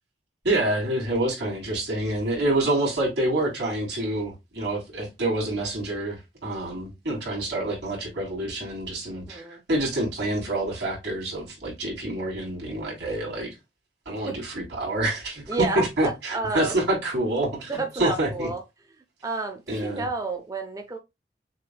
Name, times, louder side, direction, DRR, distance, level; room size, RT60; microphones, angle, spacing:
voice 1, 0.4-13.6 14.1-18.5 19.7-20.1, right 1 dB, 85° right, 2.7 m, -27 dB
voice 2, 9.1-9.6 14.3-14.4 15.5-16.7 17.7-18.6 19.2-21.0, right 3 dB, 20° right, 0.5 m, -30 dB
6.3 x 2.6 x 2.2 m
head